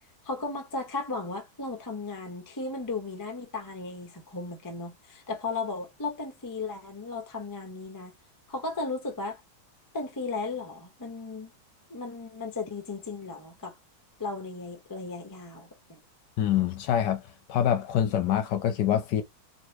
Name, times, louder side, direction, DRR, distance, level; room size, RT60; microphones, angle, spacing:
voice 1, 0.2-8.1 8.5-9.4 9.9-11.5 11.9-13.8 14.2-16.0, left 3 dB, 25° left, 0.4 m, -35 dB
voice 2, 16.4-17.2 17.5-19.2, left 10 dB, 70° left, 1.1 m, -25 dB
3.3 x 3.0 x 2.8 m
omnidirectional pair, 2.2 m